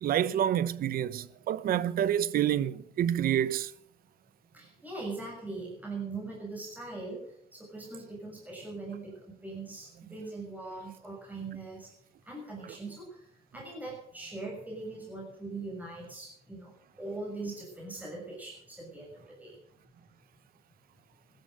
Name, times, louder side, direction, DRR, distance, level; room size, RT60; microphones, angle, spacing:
voice 1, 0.0-3.7, right 10 dB, 60° right, 0.8 m, -28 dB
voice 2, 4.5-11.9 12.2-19.6, right 3 dB, 10° right, 6.8 m, -41 dB
16.0 x 13.5 x 6.7 m
cardioid pair, 110°, 17 cm